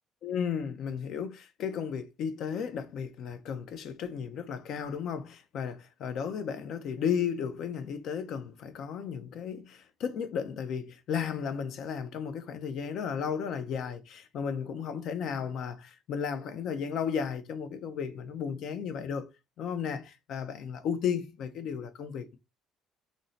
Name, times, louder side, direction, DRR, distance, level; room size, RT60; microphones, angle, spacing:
voice 1, 0.2-19.3 19.6-22.4, left 7 dB, 65° left, 0.5 m, -34 dB
2.6 x 2.1 x 3.9 m
cardioid pair, 110°, 0 cm